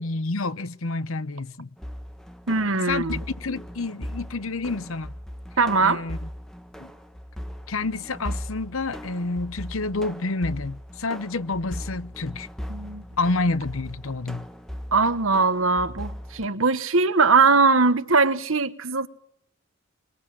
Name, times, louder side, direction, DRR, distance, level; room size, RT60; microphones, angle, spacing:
voice 1, 0.0-1.7 2.8-5.1 5.8-6.3 6.8-6.9 7.7-12.5 13.2-14.5, left 3 dB, 85° left, 0.9 m, -29 dB
sound 1, 1.8-16.5, equal, ahead, 1.2 m, -38 dB
voice 2, 2.5-3.2 5.6-6.0 12.7-13.0 14.9-19.1, right 4 dB, 80° right, 1.4 m, -21 dB
25.0 x 22.0 x 7.8 m
head